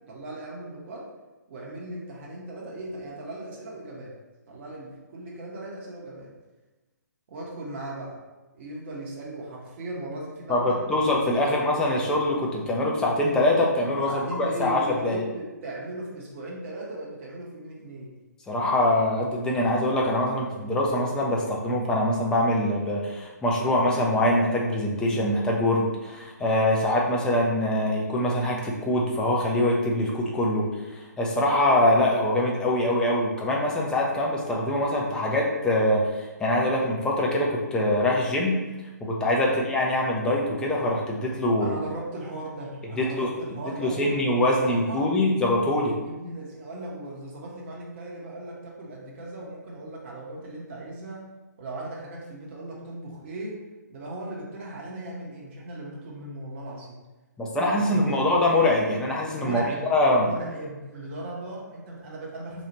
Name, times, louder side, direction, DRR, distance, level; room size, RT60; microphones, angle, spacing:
voice 1, 0.1-1.1 1.5-4.1 4.5-6.3 7.3-8.2 8.5-10.8 11.3-11.7 14.1-18.1 39.4-39.6 41.6-45.1 46.0-51.2 51.6-53.6 53.9-57.0 57.7-58.2 59.4-59.8 60.2-62.7, right 1 dB, 40° right, -4 dB, 0.8 m, -37 dB
voice 2, 10.5-15.2 18.5-30.7 30.9-38.5 39.0-41.8 43.0-43.3 43.8-45.9 57.4-59.6 59.9-60.3, left 1 dB, 10° left, -2 dB, 0.4 m, -24 dB
2.9 x 2.4 x 4.2 m, 1.1 s
figure-of-eight pair, 130°, 10 cm